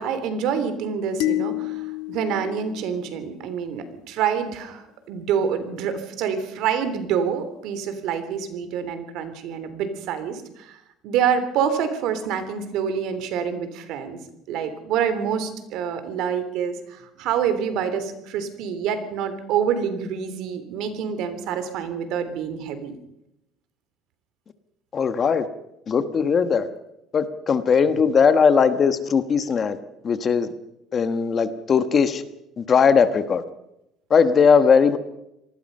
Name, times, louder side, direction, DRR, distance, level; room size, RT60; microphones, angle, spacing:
voice 1, 0.0-10.8 11.0-14.2 14.5-22.9, right 7 dB, 60° right, 10 dB, 3.3 m, -27 dB
sound 1, 1.2-3.6, left 18 dB, 80° left, 1.3 m, -29 dB
voice 2, 24.9-25.4 25.9-26.7 27.1-29.8 30.0-30.5 30.9-32.2 32.6-33.4 34.1-35.0, left 6 dB, 25° left, 11 dB, 1.2 m, -19 dB
26.5 x 19.5 x 5.5 m, 0.85 s
cardioid pair, 175°, 0 cm